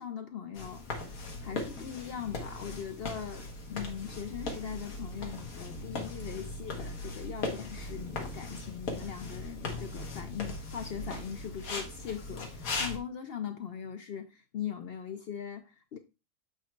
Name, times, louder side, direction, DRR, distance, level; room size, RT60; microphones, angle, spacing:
voice 1, 0.0-16.0, left 8 dB, 60° left, 0.6 m, -40 dB
sound 1, 0.5-13.0, left 2 dB, 80° left, 1.7 m, -39 dB
7.9 x 3.1 x 4.5 m
omnidirectional pair, 1.5 m